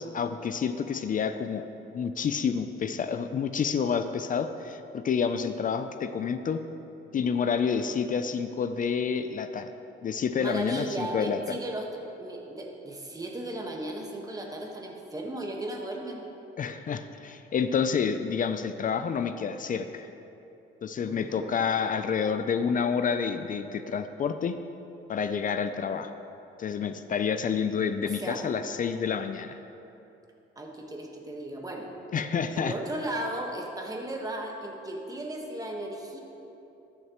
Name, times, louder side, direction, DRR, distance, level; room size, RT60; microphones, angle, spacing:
voice 1, 0.0-1.6 1.9-6.6 7.1-9.7 10.0-11.6 16.6-20.1 20.8-24.6 25.1-26.1 26.6-29.6 32.1-32.7, left 6 dB, 45° left, 10 dB, 0.4 m, -29 dB
voice 2, 10.4-11.9 12.2-16.2 21.0-21.6 28.0-28.4 30.6-31.9 32.5-36.2, right 1 dB, 20° right, 1 dB, 1.4 m, -36 dB
14.0 x 6.5 x 3.0 m, 2.9 s
cardioid pair, 90°, 20 cm